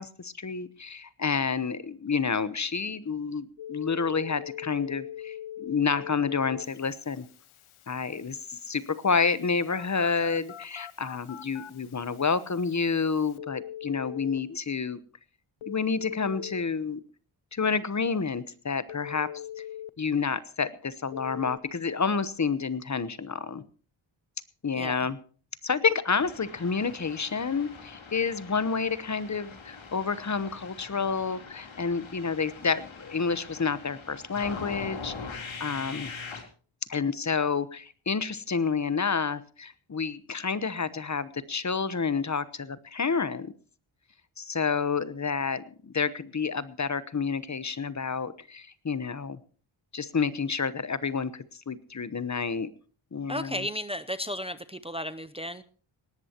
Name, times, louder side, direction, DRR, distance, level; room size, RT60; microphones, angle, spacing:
voice 1, 0.0-7.2 7.9-15.0 15.7-17.0 17.5-19.3 20.0-23.6 24.6-25.2 25.6-36.1 36.9-43.5 44.4-49.4 49.9-52.7 53.1-53.7, left 5 dB, 35° left, 15 dB, 1.0 m, -29 dB
Telephone, 3.6-14.4 15.6-16.6 18.9-19.9 21.1-21.6, left 11 dB, 85° left, 0.9 m, -42 dB
voice 2, 24.7-25.1 53.3-55.6, equal, 10° right, 12 dB, 0.7 m, -34 dB
sound 1, 26.1-36.4, left 5 dB, 70° left, 3.7 m, -43 dB
19.5 x 18.0 x 3.0 m, 0.40 s
wide cardioid pair, 130°, 48 cm